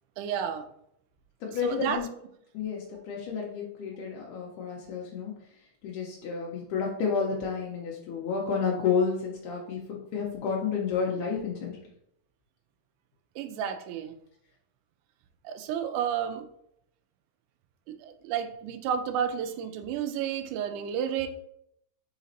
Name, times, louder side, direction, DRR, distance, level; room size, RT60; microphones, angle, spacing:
voice 1, 0.2-0.7 1.4-2.1 13.4-14.1 15.4-16.5 17.9-21.3, right 8 dB, 85° right, 8 dB, 2.1 m, -31 dB
voice 2, 1.4-2.1 2.5-5.3 5.8-11.8, left 6 dB, 85° left, -3 dB, 2.2 m, -30 dB
4.9 x 4.0 x 2.6 m, 0.74 s
omnidirectional pair, 3.6 m